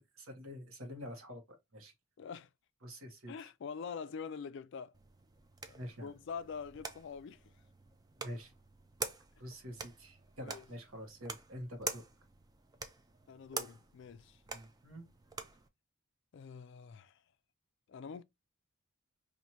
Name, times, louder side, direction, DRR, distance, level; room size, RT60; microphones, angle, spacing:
voice 1, 0.0-1.9 2.8-3.5 5.7-6.1 8.2-8.5 9.4-12.0 14.5-15.1, equal, 80° right, 1.2 m, -47 dB
voice 2, 2.2-2.5 3.3-4.9 5.7-7.4 10.4-10.6 13.3-14.4 16.3-17.2 17.9-18.2, left 6 dB, 55° left, 0.3 m, -45 dB
sound 1, 4.9-15.7, right 4 dB, 20° right, 0.4 m, -46 dB
4.5 x 2.6 x 2.8 m
head